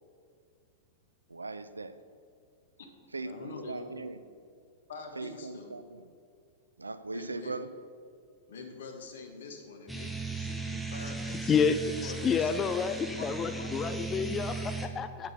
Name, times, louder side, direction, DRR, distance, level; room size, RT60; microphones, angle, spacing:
voice 1, 1.3-1.9 3.1-4.2 5.2-6.1 6.8-7.7, right 3 dB, 85° right, 12 dB, 0.5 m, -39 dB
voice 2, 3.2-3.9 4.9-5.7 7.1-7.5 8.5-12.5 13.2-14.4, left 4 dB, 65° left, 4 dB, 1.6 m, -45 dB
sound 1, 9.9-14.9, right 3 dB, ahead, 1.2 m, -37 dB
voice 3, 11.5-15.3, left 6 dB, 25° left, 10 dB, 0.4 m, -29 dB
9.1 x 7.7 x 5.8 m, 2.3 s
figure-of-eight pair, 95°, 0 cm